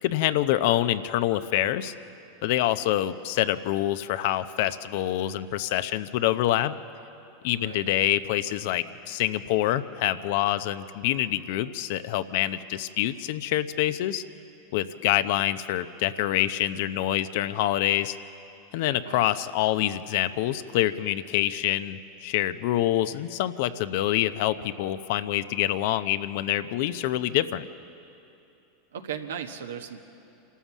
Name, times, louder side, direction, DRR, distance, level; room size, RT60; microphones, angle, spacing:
voice 1, 0.0-1.9 2.4-6.7 7.4-14.2 14.7-18.2 18.7-27.7, left 13 dB, 65° left, 13 dB, 0.7 m, -26 dB
voice 2, 7.6-7.9 19.0-19.3 28.9-30.0, right 8 dB, 85° right, 6 dB, 1.3 m, -37 dB
27.5 x 13.0 x 7.3 m, 2.8 s
hypercardioid pair, 100°, 0 cm